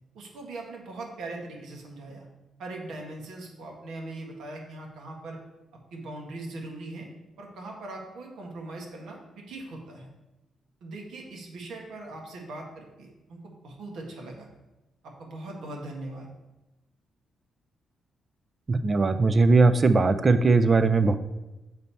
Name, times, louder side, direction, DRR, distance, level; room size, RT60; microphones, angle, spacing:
voice 1, 0.1-2.3 2.6-5.4 5.9-7.1 7.4-10.1 10.8-14.5 15.2-16.3, right 2 dB, 80° right, 0 dB, 1.5 m, -40 dB
voice 2, 18.7-21.2, right 3 dB, 25° right, 11 dB, 0.3 m, -20 dB
6.9 x 4.0 x 4.3 m, 1.0 s
cardioid pair, 155°, 0 cm